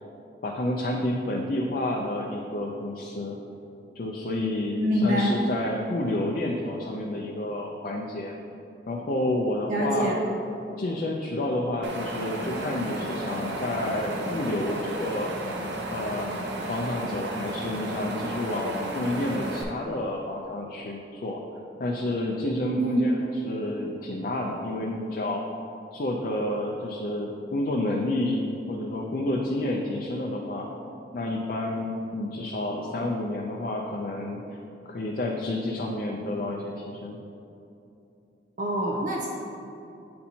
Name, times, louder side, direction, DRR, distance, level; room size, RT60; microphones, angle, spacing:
voice 1, 0.4-3.4 3.9-8.3 8.9-10.1 10.8-15.3 15.9-21.4 21.8-23.1 23.4-25.4 25.9-30.7 31.1-34.4 34.9-37.2, left 1 dB, 50° left, -1 dB, 0.4 m, -29 dB
voice 2, 4.8-5.4 9.7-10.1 22.8-23.0 38.6-39.3, equal, 45° right, -3 dB, 0.6 m, -25 dB
Wind, 11.8-19.6, right 1 dB, 80° right, 0.7 m, -33 dB
8.4 x 4.3 x 2.7 m, 2.8 s
head